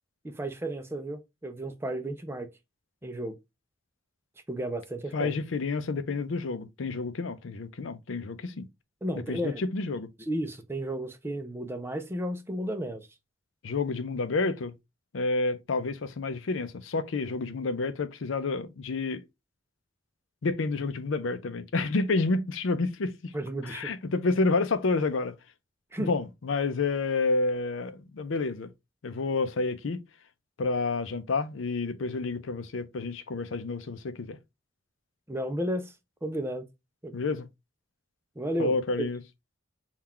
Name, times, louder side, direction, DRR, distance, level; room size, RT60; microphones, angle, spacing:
voice 1, 0.2-2.5 3.0-3.4 4.5-5.3 9.0-9.6 10.3-13.1 23.3-23.9 25.9-26.1 35.3-35.9 36.2-36.6 37.0-37.1 38.4-38.7, right 1 dB, 10° right, 0.4 m, -33 dB
voice 2, 5.1-8.7 9.3-10.1 13.6-14.7 15.1-19.2 20.4-23.3 23.6-25.4 26.0-28.7 29.0-30.0 30.6-34.4 37.1-37.5 38.6-39.2, left 3 dB, 80° left, 0.5 m, -29 dB
3.7 x 2.4 x 4.2 m
head